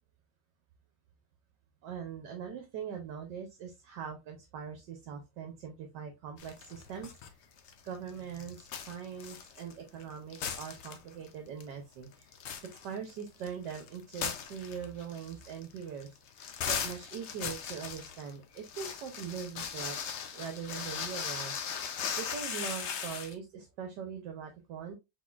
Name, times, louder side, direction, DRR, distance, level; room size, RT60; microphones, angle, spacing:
voice 1, 1.8-7.4 7.8-12.3 12.6-20.0 20.3-21.5 21.8-24.9, right 7 dB, 70° right, 4 dB, 1.3 m, -42 dB
sound 1, 6.4-7.3 7.6-10.0 10.3-11.3 11.6-11.7 12.1-23.3, left 7 dB, 85° left, 0.6 m, -38 dB
4.4 x 4.0 x 2.4 m, 0.23 s
omnidirectional pair, 2.0 m